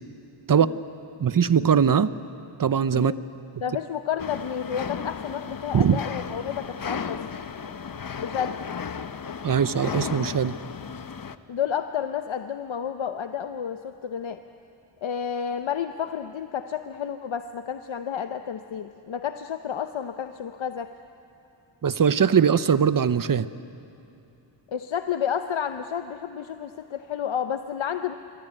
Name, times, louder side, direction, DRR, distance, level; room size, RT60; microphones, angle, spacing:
voice 1, 1.2-2.1 2.6-3.1 5.7-6.0 9.4-10.5 21.8-23.5, right 7 dB, 45° right, 14 dB, 0.7 m, -20 dB
voice 2, 3.6-7.3 8.2-8.6 11.5-14.4 15.0-20.9 24.7-28.1, left 8 dB, 75° left, 8 dB, 0.8 m, -31 dB
sound 1, 4.2-11.4, left 6 dB, 45° left, 0.8 m, -35 dB
26.5 x 23.0 x 8.9 m, 2.8 s
wide cardioid pair, 145°, 47 cm